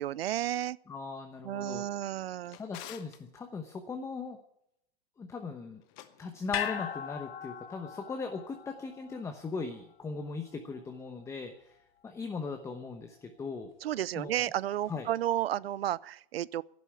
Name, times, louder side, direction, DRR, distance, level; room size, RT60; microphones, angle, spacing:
voice 1, 0.0-0.8 1.4-2.6 13.8-16.6, right 12 dB, 80° right, 0.6 m, -32 dB
voice 2, 0.9-1.8 2.6-4.4 5.2-5.8 6.2-13.7 14.2-14.5 14.9-15.1, left 4 dB, 10° left, 1.0 m, -39 dB
Drawer open or close, 2.0-3.2 5.8-6.8, left 13 dB, 35° left, 1.2 m, -50 dB
sound 1, 6.5-10.9 11.2-11.3, left 9 dB, 80° left, 1.8 m, -40 dB
11.5 x 11.0 x 9.7 m
hypercardioid pair, 145°, 30 cm